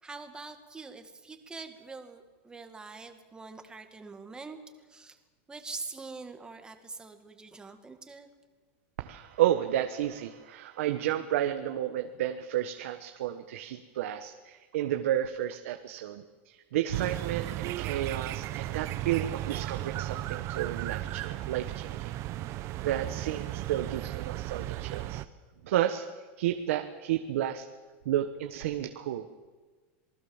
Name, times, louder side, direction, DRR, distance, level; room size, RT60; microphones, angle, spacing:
voice 1, 0.0-5.2 5.5-8.3, right 4 dB, 10° right, 6 dB, 2.2 m, -44 dB
voice 2, 9.0-22.1 22.8-25.2 25.6-26.1 26.4-27.7 28.0-29.3, right 12 dB, 85° right, 6 dB, 1.4 m, -31 dB
sound 1, 16.9-25.2, right 15 dB, 40° right, 0.9 m, -35 dB
27.0 x 19.5 x 7.4 m, 1.4 s
supercardioid pair, 145°, 7 cm